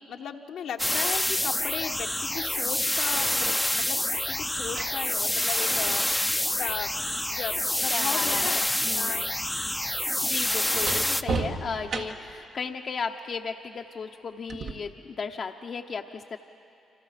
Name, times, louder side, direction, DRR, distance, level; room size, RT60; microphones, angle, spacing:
voice 1, 0.0-6.0 6.6-6.9 7.3-8.7 8.9-9.3 9.6-9.7, left 7 dB, 70° left, 4 dB, 1.2 m, -36 dB
sound 1, 0.8-11.2, left 1 dB, 10° left, 0.7 m, -27 dB
sound 2, 3.1-3.3 4.4-8.4 8.7-12.4 14.5-14.7, right 4 dB, 65° right, 1.8 m, -37 dB
voice 2, 7.9-9.3 10.2-16.4, left 5 dB, 55° left, 4 dB, 0.9 m, -35 dB
29.0 x 25.5 x 5.9 m, 2.6 s
supercardioid pair, 60°, 0 cm